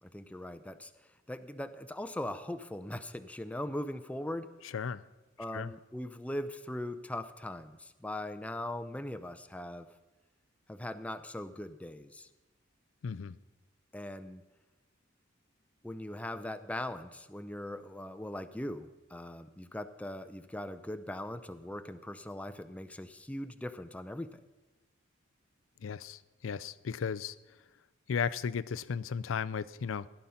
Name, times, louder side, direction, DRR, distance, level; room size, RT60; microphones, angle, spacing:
voice 1, 0.0-0.9 1.3-4.5 5.4-9.9 10.7-12.3 13.9-14.4 15.8-24.4, left 1 dB, 5° left, 11 dB, 0.5 m, -40 dB
voice 2, 13.0-13.4 25.8-27.3 28.1-30.1, left 6 dB, 80° left, 17 dB, 0.4 m, -35 dB
16.0 x 11.0 x 5.7 m, 1.1 s
head